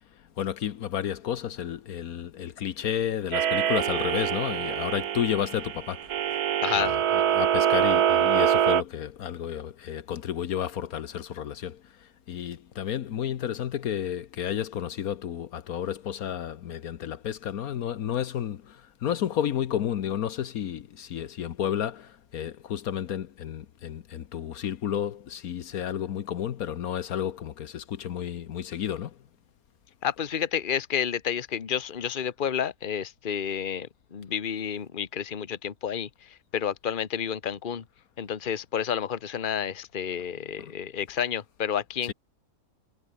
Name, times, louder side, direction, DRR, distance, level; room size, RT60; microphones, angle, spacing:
voice 1, 0.4-6.2 6.7-29.2 40.6-40.7 42.1-42.2, left 9 dB, 70° left, 1.4 m, -31 dB
sound 1, 3.3-8.8, right 10 dB, 80° right, 1.5 m, -24 dB
voice 2, 6.6-7.0 30.0-37.8 38.2-42.1, left 8 dB, 35° left, 1.2 m, -30 dB
omnidirectional pair, 1.6 m